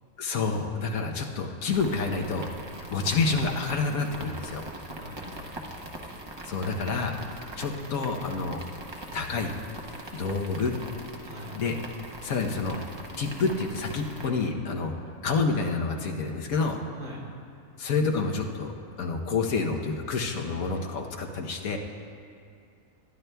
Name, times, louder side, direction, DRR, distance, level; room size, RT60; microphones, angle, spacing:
voice 1, 0.2-4.6 6.5-7.2 7.6-8.6 9.1-9.5 10.1-10.8 11.5-11.7 12.2-12.8 13.2-14.9 15.2-16.8 17.8-18.7 19.0-21.8, left 4 dB, 75° left, 2 dB, 1.3 m, -28 dB
sound 1, 1.7-14.3, right 1 dB, 25° right, 0.7 m, -41 dB
voice 2, 5.0-5.8 11.2-11.6 17.0-17.3, equal, 60° right, -4 dB, 2.1 m, -43 dB
21.0 x 10.5 x 2.3 m, 2.4 s
omnidirectional pair, 1.5 m